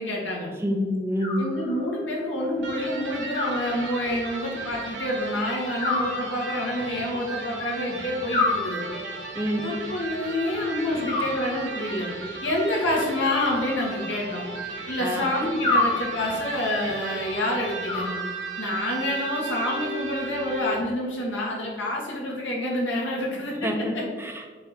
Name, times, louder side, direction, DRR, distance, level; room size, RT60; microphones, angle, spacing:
voice 1, 0.0-0.5 1.4-8.8 9.6-12.1 12.4-14.5 14.9-18.2 18.6-24.0, left 1 dB, 85° left, -3 dB, 1.8 m, -28 dB
voice 2, 0.6-1.5 9.4-9.7 15.0-15.3 23.6-24.5, equal, 15° right, 2 dB, 0.7 m, -27 dB
Animal, 1.2-2.1 3.3-4.3 5.8-6.9 8.3-9.3 11.0-12.0 13.2-14.3 15.6-16.5 17.9-18.8, left 2 dB, 25° left, 1.1 m, -29 dB
Electric guitar, 2.6-21.0, right 3 dB, 75° right, 1.2 m, -36 dB
6.7 x 3.6 x 4.5 m, 1.6 s
head